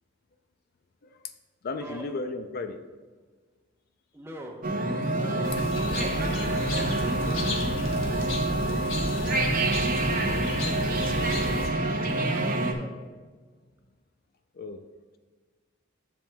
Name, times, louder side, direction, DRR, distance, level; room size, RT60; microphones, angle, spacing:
voice 1, 1.6-2.8 14.5-14.8, left 3 dB, 50° left, 8 dB, 0.4 m, -34 dB
voice 2, 4.1-4.7 5.2-7.5 9.9-11.7 12.0-13.0, right 1 dB, 15° right, 1 dB, 0.9 m, -41 dB
sound 1, 4.6-12.7, right 2 dB, 45° right, 0.7 m, -27 dB
sound 2, 5.4-11.7, left 2 dB, 90° left, 1.3 m, -34 dB
10.0 x 7.1 x 2.3 m, 1.4 s
head